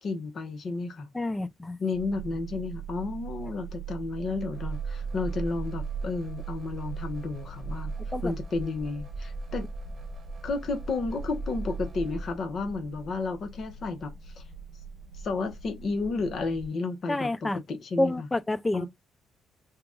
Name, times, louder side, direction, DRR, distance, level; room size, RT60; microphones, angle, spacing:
voice 1, 0.0-1.1 1.8-7.9 8.2-9.7 10.4-14.4 15.2-17.3 17.7-18.1 18.7-18.9, left 3 dB, 55° left, 1.0 m, -32 dB
voice 2, 1.1-1.8 8.1-8.3 17.1-17.6 18.0-18.9, left 2 dB, 15° left, 0.4 m, -28 dB
sound 1, 1.9-16.7, right 7 dB, 85° right, 0.7 m, -42 dB
sound 2, 4.5-12.4, right 2 dB, 45° right, 1.1 m, -38 dB
2.9 x 2.3 x 3.6 m
cardioid pair, 90°, 0 cm